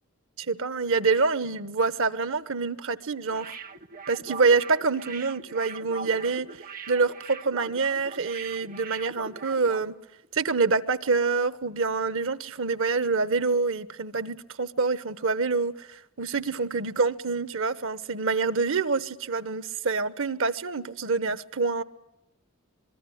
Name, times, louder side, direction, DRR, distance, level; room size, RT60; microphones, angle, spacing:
voice 1, 0.4-3.5 4.1-6.5 6.9-10.0 10.3-21.8, right 4 dB, 70° right, 1.0 m, -26 dB
sound 1, 3.3-9.9 10.2-10.3, right 5 dB, 40° right, 0.8 m, -41 dB
24.5 x 22.0 x 8.6 m
head